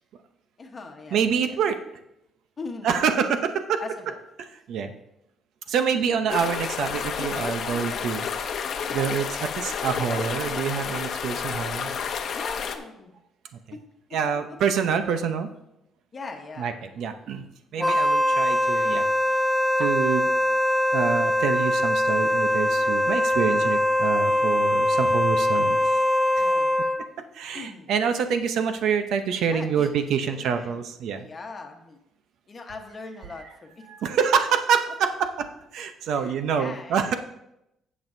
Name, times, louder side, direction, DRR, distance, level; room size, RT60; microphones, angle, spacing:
voice 1, 0.6-1.6 2.6-3.3 3.8-4.2 6.1-6.2 12.3-13.1 13.7-13.8 16.1-17.3 26.4-26.8 27.1-27.2 27.5-28.1 29.5-30.0 30.2-30.8 31.2-32.0 32.5-34.1 34.5-34.6 36.1-37.1, left 3 dB, 25° left, 4 dB, 1.2 m, -41 dB
voice 2, 1.1-1.8 2.8-3.8 4.5-4.9 5.7-8.6 8.9-11.9 14.1-15.5 16.6-17.4 17.7-19.1 19.8-20.3 20.9-25.8 27.3-31.3 33.9-37.1, right 7 dB, 65° right, 8 dB, 0.7 m, -26 dB
sound 1, 6.3-12.8, left 6 dB, 50° left, 0.8 m, -30 dB
Wind instrument woodwind instrument, 17.8-27.1, left 1 dB, 5° left, 0.3 m, -22 dB
16.0 x 6.1 x 2.7 m, 0.83 s
cardioid pair, 155°, 0 cm